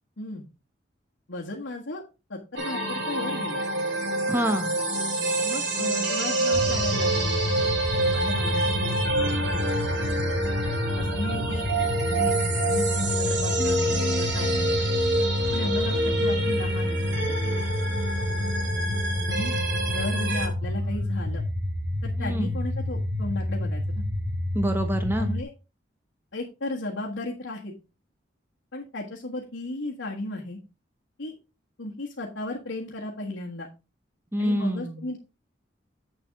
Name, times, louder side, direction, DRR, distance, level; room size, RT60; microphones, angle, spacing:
voice 1, 1.3-2.0 2.3-3.6 5.4-7.4 8.0-9.7 11.0-11.7 12.1-12.3 12.6-14.8 15.5-17.4 19.3-19.5 19.9-21.4 22.0-24.0 25.2-25.5 26.3-27.7 28.7-30.6 31.2-31.4 31.8-33.7 34.4-35.2, left 2 dB, 85° left, -4 dB, 1.8 m, -35 dB
sound 1, 2.6-20.5, right 1 dB, 65° right, 2.5 m, -27 dB
voice 2, 4.3-4.8 22.2-22.6 24.5-25.3 34.3-35.0, equal, 10° right, 7 dB, 1.1 m, -27 dB
sound 2, 6.5-25.4, left 1 dB, 85° right, 5.4 m, -29 dB
8.1 x 7.1 x 3.6 m, 0.28 s
head